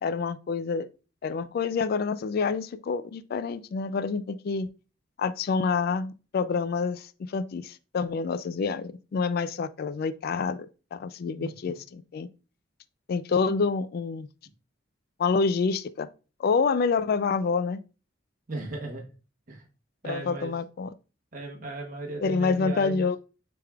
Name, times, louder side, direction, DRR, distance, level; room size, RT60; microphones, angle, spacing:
voice 1, 0.0-0.9 1.2-4.7 5.2-10.7 10.9-12.3 13.1-14.3 15.2-16.1 16.4-17.8 20.0-20.9 22.2-23.2, left 5 dB, 55° left, 0.3 m, -27 dB
voice 2, 18.5-19.0 19.5-19.6 20.0-20.5 21.3-23.1, right 2 dB, 45° right, 1.1 m, -36 dB
6.4 x 3.5 x 2.3 m
head